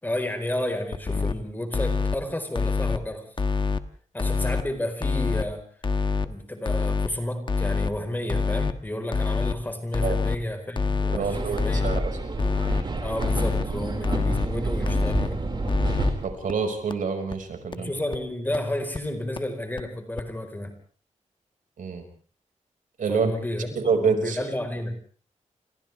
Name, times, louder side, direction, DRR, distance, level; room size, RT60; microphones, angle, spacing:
voice 1, 0.0-3.2 4.1-5.7 6.2-12.0 13.0-15.4 17.8-20.7 23.1-24.9, left 1 dB, 15° left, 6 dB, 4.5 m, -31 dB
sound 1, 0.9-1.3 1.7-2.2 2.5-3.0 3.4-3.8 4.2-4.6 5.0-5.4 5.8-6.3 6.7-7.1 7.5-7.9 8.3-8.7 9.1-9.5 9.9-10.4 10.8-11.2 11.6-12.0 12.4-12.8 13.2-13.6 14.0-14.5 14.9-15.3 15.7-16.1 16.5-16.6 16.9-17.0 17.3-17.4 17.7-17.8 18.1-18.2 18.5-18.6 18.9-19.0 19.4-19.5 19.8-19.9 20.2-20.3, left 4 dB, 40° left, 1.2 m, -25 dB
voice 2, 11.1-12.1 16.2-17.9 21.8-22.0 23.0-23.3 23.8-24.5, right 5 dB, 85° right, 5 dB, 5.6 m, -27 dB
sound 2, 11.2-16.3, right 2 dB, 35° right, 5.1 m, -29 dB
29.5 x 28.0 x 3.5 m, 0.43 s
wide cardioid pair, 145°, 13 cm